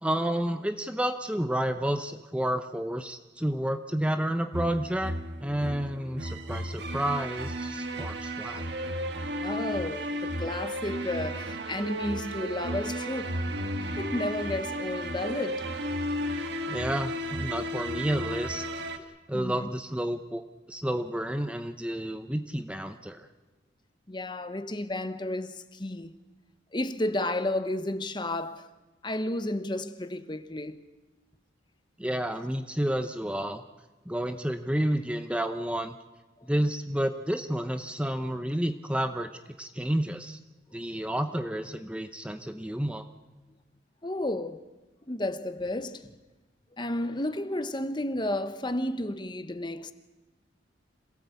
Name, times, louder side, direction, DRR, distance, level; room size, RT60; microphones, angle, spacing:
voice 1, 0.0-5.1 5.4-8.7 16.4-18.6 19.3-20.4 20.7-23.3 32.0-33.6 34.1-36.0 36.5-39.3 39.6-40.4 40.7-43.0, right 1 dB, 5° right, 0.7 m, -30 dB
sound 1, 4.5-19.0, equal, 70° right, 1.7 m, -34 dB
voice 2, 9.4-13.4 14.0-15.7 19.3-19.7 24.1-26.1 26.7-28.7 29.0-30.8 44.0-44.6 45.1-46.1 46.8-49.9, left 1 dB, 25° left, 1.0 m, -32 dB
26.0 x 17.0 x 8.4 m
head